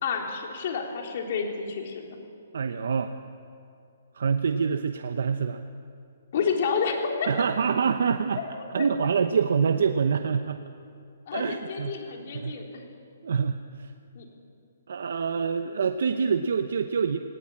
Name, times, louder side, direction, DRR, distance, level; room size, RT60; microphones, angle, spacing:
voice 1, 0.0-2.1 6.3-7.5 8.4-8.9 11.3-12.8 14.2-14.3, left 5 dB, 45° left, 1 dB, 3.7 m, -30 dB
voice 2, 2.5-3.1 4.1-5.6 7.3-8.4 8.7-10.6 11.3-12.6 13.2-13.9 14.9-17.2, right 6 dB, 70° right, 8 dB, 0.9 m, -26 dB
18.5 x 18.0 x 8.7 m, 2.5 s
hypercardioid pair, 160°, 0 cm